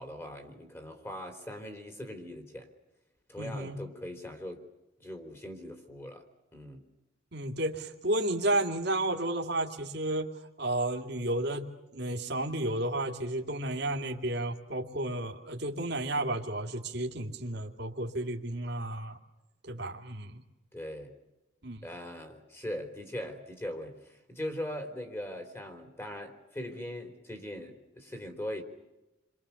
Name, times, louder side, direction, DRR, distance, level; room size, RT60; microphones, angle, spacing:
voice 1, 0.0-2.7 3.3-4.6 5.0-6.2 6.5-6.8 20.7-21.1 21.8-28.6, left 1 dB, 15° left, 6 dB, 3.5 m, -40 dB
voice 2, 3.4-3.8 7.3-11.7 11.9-19.2 19.6-20.4 21.6-21.9, right 1 dB, 55° right, 3 dB, 2.4 m, -32 dB
29.5 x 23.5 x 7.1 m, 1.0 s
head